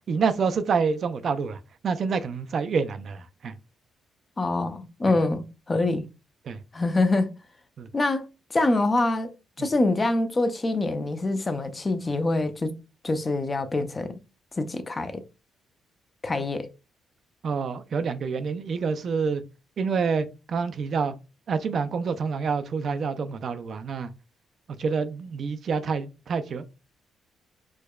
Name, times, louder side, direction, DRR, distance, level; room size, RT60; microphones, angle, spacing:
voice 1, 0.1-3.5 6.5-6.6 7.8-7.9 9.6-9.7 17.4-19.4 19.8-21.1 21.5-24.1 24.8-26.7, right 5 dB, 55° right, 0.3 m, -27 dB
voice 2, 4.4-6.0 6.7-7.3 7.9-8.3 8.5-9.3 9.6-12.7 13.0-14.2 14.6-15.2 16.2-16.7, left 2 dB, 25° left, 0.5 m, -25 dB
4.5 x 2.2 x 2.3 m
cardioid pair, 90°, 0 cm